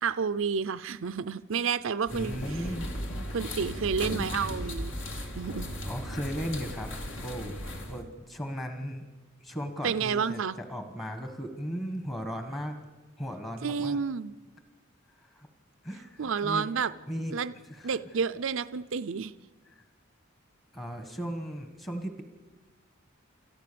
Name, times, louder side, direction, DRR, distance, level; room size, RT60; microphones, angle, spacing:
voice 1, 0.0-2.6 3.3-5.7 9.8-10.6 13.6-14.3 16.2-16.9 17.3-17.5 17.8-19.3, right 6 dB, 70° right, 13 dB, 0.6 m, -30 dB
sound 1, 2.0-8.0, equal, 65° left, 2.6 m, -36 dB
voice 2, 2.1-2.9 5.9-6.9 7.2-7.6 7.9-9.0 9.4-12.8 13.2-14.0 15.1-15.5 15.8-16.7 17.1-18.0 19.6-19.8 20.7-22.2, equal, 20° left, 6 dB, 1.5 m, -36 dB
27.5 x 14.0 x 6.9 m, 1.3 s
head